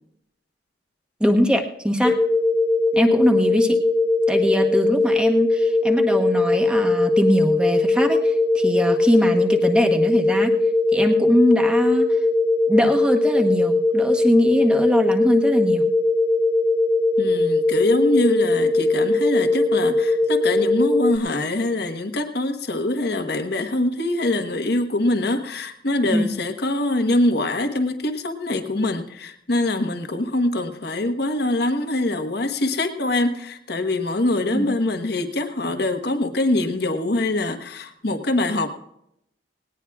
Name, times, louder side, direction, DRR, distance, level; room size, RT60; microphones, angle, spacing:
voice 1, 1.2-2.2 2.9-3.8 4.3-10.5 10.9-12.1 12.7-15.8 26.1-26.3 34.5-34.7, equal, 5° right, 3 dB, 1.2 m, -21 dB
sound 1, 2.0-21.2, left 2 dB, 10° left, 1.3 m, -20 dB
voice 2, 17.2-38.7, left 2 dB, 65° left, 7 dB, 1.2 m, -24 dB
19.0 x 18.0 x 2.4 m, 0.78 s
head